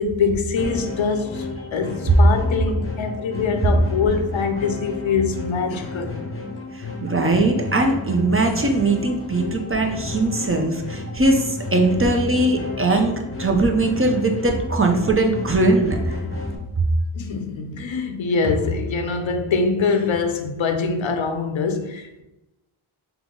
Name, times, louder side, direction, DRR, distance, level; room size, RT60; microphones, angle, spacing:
voice 1, 0.0-6.2 17.1-22.2, left 5 dB, 65° left, 0.6 m, -24 dB
sound 1, 0.6-16.6, left 3 dB, 25° left, 0.7 m, -32 dB
voice 2, 6.8-13.1 13.4-16.2, right 2 dB, 25° right, 0.6 m, -20 dB
3.7 x 3.0 x 3.7 m
wide cardioid pair, 75°, 50 cm